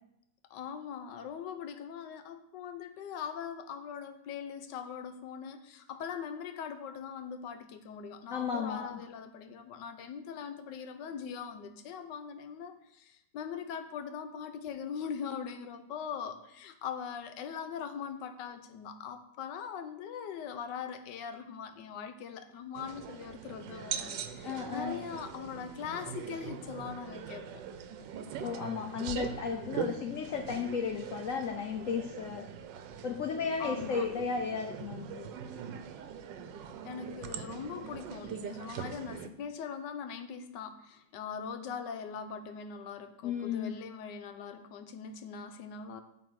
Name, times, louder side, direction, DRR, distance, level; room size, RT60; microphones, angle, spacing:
voice 1, 0.5-27.6 33.6-34.1 36.8-46.0, left 7 dB, 90° left, 8 dB, 1.3 m, -41 dB
voice 2, 8.3-8.9 24.4-25.0 28.4-32.5 33.0-35.3 43.2-43.7, left 6 dB, 65° left, 4 dB, 0.8 m, -34 dB
sound 1, 22.7-39.3, right 8 dB, 90° right, 1.3 m, -42 dB
8.8 x 3.5 x 6.2 m, 0.80 s
omnidirectional pair, 1.9 m